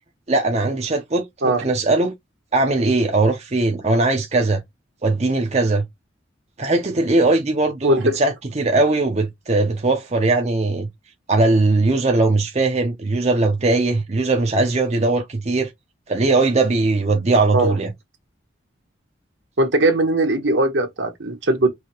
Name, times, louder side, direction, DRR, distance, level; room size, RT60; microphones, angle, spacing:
voice 1, 0.3-2.1 2.5-4.6 5.0-5.8 6.6-10.9 11.3-15.7 16.1-17.9, right 2 dB, 35° right, 0.7 m, -19 dB
voice 2, 19.6-21.7, right 2 dB, 70° right, 1.3 m, -19 dB
4.7 x 2.8 x 3.0 m
head